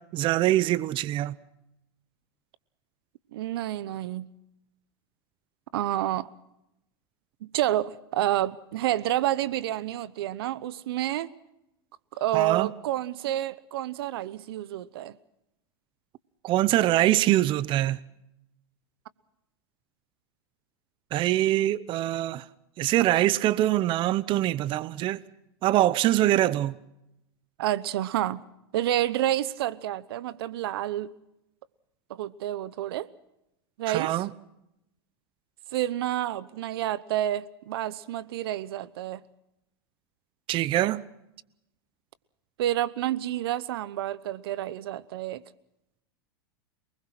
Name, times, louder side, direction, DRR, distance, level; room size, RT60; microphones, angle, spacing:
voice 1, 0.1-1.4 12.3-12.7 16.4-18.0 21.1-22.4 22.8-25.2 25.6-26.7 33.9-34.3 40.5-41.0, right 14 dB, 40° right, 0.8 m, -24 dB
voice 2, 3.3-4.3 5.7-6.3 7.4-11.3 12.2-15.1 27.6-28.4 28.7-31.1 32.1-33.1 33.8-34.3 35.7-39.2 42.6-45.4, right 13 dB, 70° right, 0.9 m, -29 dB
28.0 x 20.5 x 6.0 m
hypercardioid pair, 110°, 13 cm